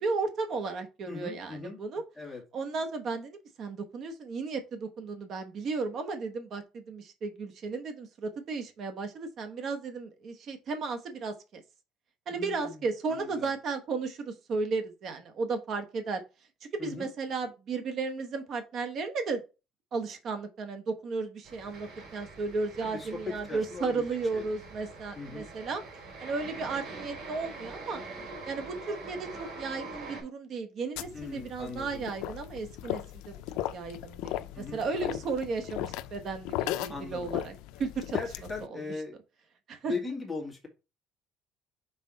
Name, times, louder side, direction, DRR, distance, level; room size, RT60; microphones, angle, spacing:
voice 1, 0.0-2.0 2.5-11.6 12.3-16.2 16.8-19.4 19.9-25.8 26.2-28.0 28.4-33.4 33.7-37.5 37.8-38.2 38.7-38.8 39.7-39.9, right 4 dB, 45° right, 7 dB, 1.1 m, -34 dB
voice 2, 1.0-1.8 2.2-2.4 12.3-13.5 16.8-17.1 22.8-24.0 24.3-24.5 25.1-25.5 31.1-32.1 34.5-34.8 35.1-35.2 36.9-37.3 38.1-39.2 39.8-40.7, left 4 dB, 5° left, -1 dB, 2.0 m, -39 dB
sound 1, 21.4-30.2, right 3 dB, 60° right, 3.4 m, -44 dB
sound 2, 31.0-38.7, left 14 dB, 85° left, 0.4 m, -37 dB
5.7 x 4.0 x 4.1 m, 0.29 s
cardioid pair, 155°, 0 cm